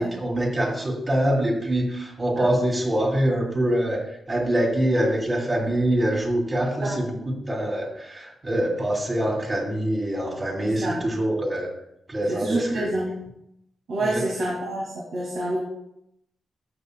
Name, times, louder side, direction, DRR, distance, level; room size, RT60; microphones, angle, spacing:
voice 1, 0.0-11.7 12.1-12.9 14.0-14.3, right 1 dB, 30° right, -1 dB, 2.7 m, -24 dB
voice 2, 10.6-11.0 12.3-13.1 13.9-15.6, right 1 dB, 75° right, -6 dB, 2.2 m, -27 dB
14.5 x 5.9 x 2.3 m, 0.79 s
cardioid pair, 85°, 0 cm